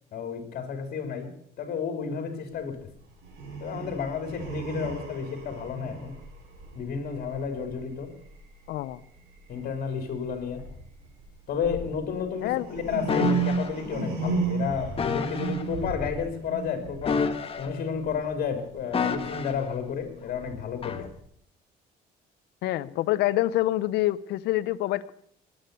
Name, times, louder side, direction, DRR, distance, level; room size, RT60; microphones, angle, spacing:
voice 1, 0.1-2.9 3.6-6.2 6.7-8.1 9.5-10.7 11.5-17.3 17.6-21.1, left 6 dB, 60° left, 5 dB, 3.3 m, -32 dB
sound 1, 2.9-3.0 3.2-8.4 8.8-9.2 9.6-9.7 10.0-18.2 18.7-21.2, right 4 dB, 90° right, 6.0 m, -34 dB
voice 2, 8.7-9.0 12.4-12.8 22.6-25.1, left 16 dB, 80° left, 16 dB, 0.8 m, -26 dB
sound 2, 13.1-13.7 15.0-15.6 17.0-17.9 18.9-19.7 20.8-21.1, left 5 dB, 35° left, 1.6 m, -29 dB
21.0 x 9.0 x 6.8 m, 0.66 s
cardioid pair, 110°, 17 cm